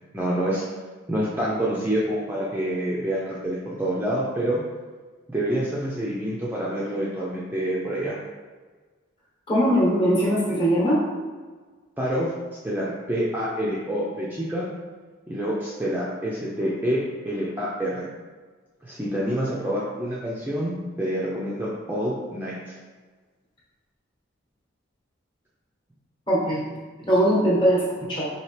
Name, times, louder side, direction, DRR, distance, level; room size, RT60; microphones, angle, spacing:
voice 1, 0.1-0.6 1.1-4.6 5.3-8.2 12.0-12.3 12.6-14.7 15.3-18.1 18.8-22.7, right 1 dB, 10° right, -7 dB, 0.4 m, -27 dB
voice 2, 9.5-11.0 26.3-26.6 27.1-28.3, equal, 25° left, -5 dB, 1.0 m, -21 dB
4.3 x 2.8 x 3.2 m, 1.4 s
head